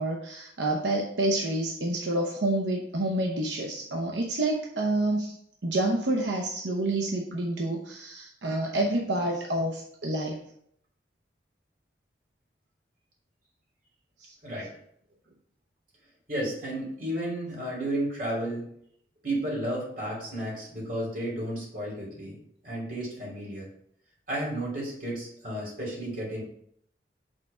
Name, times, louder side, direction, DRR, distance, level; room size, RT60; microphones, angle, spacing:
voice 1, 0.0-5.4 5.6-10.4 14.2-14.3, right 1 dB, 85° right, 1 dB, 0.8 m, -28 dB
voice 2, 16.3-18.6 19.2-22.4 22.6-23.7 24.3-26.4, right 1 dB, 50° right, -4 dB, 2.9 m, -32 dB
6.6 x 3.6 x 5.5 m, 0.68 s
head